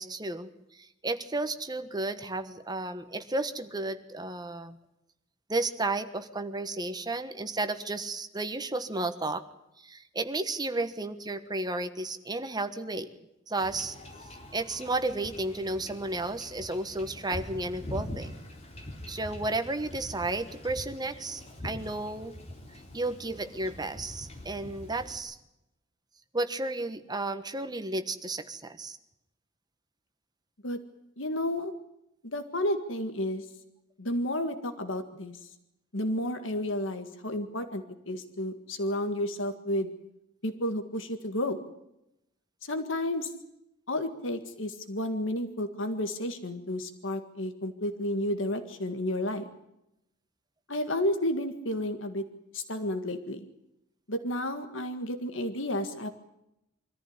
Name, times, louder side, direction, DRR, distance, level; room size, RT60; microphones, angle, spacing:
voice 1, 0.0-4.8 5.5-9.4 9.8-13.1 13.5-13.9 14.5-18.3 19.1-22.4 22.9-25.4 26.3-29.0, right 2 dB, 20° right, 9 dB, 1.3 m, -33 dB
Wind / Ocean / Boat Water vehicle, 13.6-25.2, left 1 dB, 30° left, 4.0 m, -43 dB
voice 2, 31.2-31.7 32.2-33.4 34.0-35.4 35.9-39.9 40.4-41.6 42.6-43.3 43.9-49.5 50.7-52.2 52.5-53.5 54.1-56.1, left 1 dB, 70° left, 8 dB, 1.8 m, -31 dB
24.5 x 14.5 x 9.6 m, 0.86 s
head